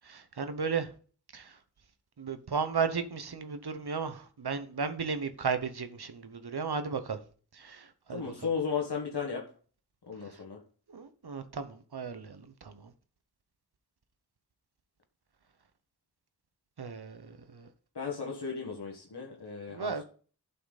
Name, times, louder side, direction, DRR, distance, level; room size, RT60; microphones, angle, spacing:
voice 1, 0.0-0.9 1.3-1.5 2.2-7.2 7.5-8.3 10.9-12.9 16.8-17.7 19.7-20.0, right 5 dB, 75° right, 1.0 m, -35 dB
voice 2, 8.1-9.5 10.1-10.6 17.9-20.0, left 6 dB, 90° left, 1.8 m, -35 dB
11.5 x 5.8 x 4.2 m
wide cardioid pair, 65°, 39 cm